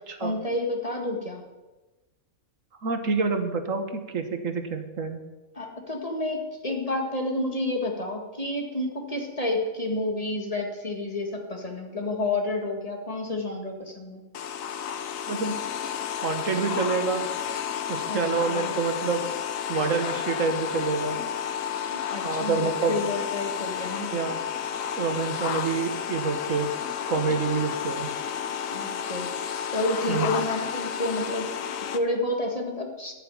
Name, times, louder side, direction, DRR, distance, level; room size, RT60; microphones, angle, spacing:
voice 1, 0.2-1.4 5.6-14.2 18.1-18.2 18.5-18.7 21.9-24.2 28.7-29.3 29.7-33.1, left 2 dB, 30° left, 1 dB, 1.9 m, -30 dB
voice 2, 2.8-5.2 15.3-15.6 16.2-17.2 17.9-19.2 19.7-21.2 22.2-23.0 24.1-24.4 25.0-26.7 27.1-28.1 30.1-30.3, right 4 dB, 75° right, 7 dB, 1.7 m, -27 dB
sound 1, 14.3-32.0, left 8 dB, 80° left, 1.2 m, -31 dB
12.5 x 6.8 x 9.8 m, 1.2 s
omnidirectional pair, 1.4 m